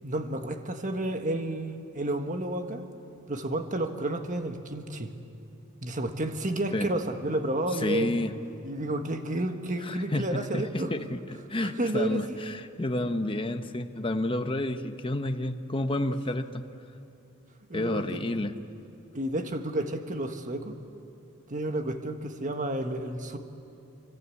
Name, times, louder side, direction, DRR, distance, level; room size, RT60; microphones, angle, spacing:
voice 1, 0.0-2.8 3.3-5.1 5.8-8.1 8.6-10.9 11.6-12.4 17.7-18.3 19.1-20.7 21.5-23.4, right 1 dB, 35° right, 6 dB, 1.5 m, -31 dB
voice 2, 7.8-8.3 9.8-16.6 17.7-18.5, left 1 dB, 25° left, 7 dB, 1.0 m, -30 dB
26.5 x 25.0 x 8.5 m, 2.7 s
head